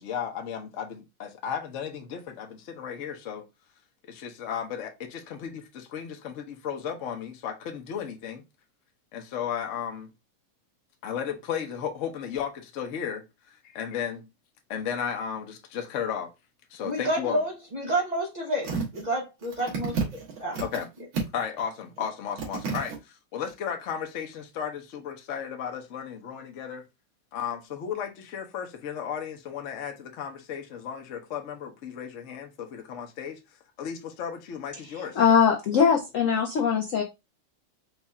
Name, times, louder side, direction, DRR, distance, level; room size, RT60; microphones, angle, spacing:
voice 1, 0.0-3.4 4.1-8.4 9.1-10.1 11.0-13.2 13.7-14.2 14.7-16.3 16.7-17.4 20.6-20.9 21.3-22.9 23.3-26.8 27.3-33.4 33.8-35.2, left 8 dB, 55° left, 0.9 m, -34 dB
voice 2, 16.8-20.0 20.4-20.7, right 1 dB, 65° right, 0.4 m, -29 dB
sound 1, 18.6-19.0 19.4-20.8 21.1-21.6 22.0-22.1 22.4-23.0 23.5-23.6, right 5 dB, 85° right, 2.0 m, -31 dB
voice 3, 34.9-37.0, left 7 dB, 90° left, 0.7 m, -22 dB
4.6 x 2.4 x 4.1 m
omnidirectional pair, 2.2 m